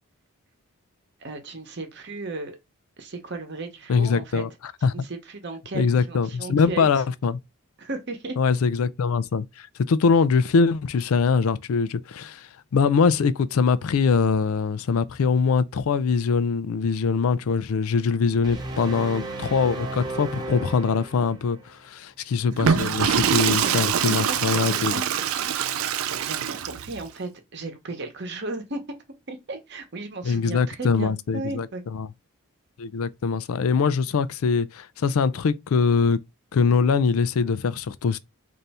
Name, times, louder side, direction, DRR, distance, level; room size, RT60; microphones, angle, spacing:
voice 1, 1.2-2.6 3.0-4.4 4.8-6.9 7.8-8.4 23.2-25.5 25.8-28.8 29.3-31.8, right 2 dB, 50° right, 0.9 m, -35 dB
voice 2, 3.9-4.5 4.8-4.9 5.7-7.4 8.4-25.0 30.2-31.7 31.9-32.1 32.8-36.2 36.5-38.2, left 5 dB, 75° left, 0.4 m, -23 dB
sound 1, 18.4-21.6, right 2 dB, 20° right, 0.6 m, -34 dB
Water / Toilet flush, 22.5-27.0, right 8 dB, 70° right, 0.4 m, -24 dB
3.4 x 2.6 x 4.1 m
head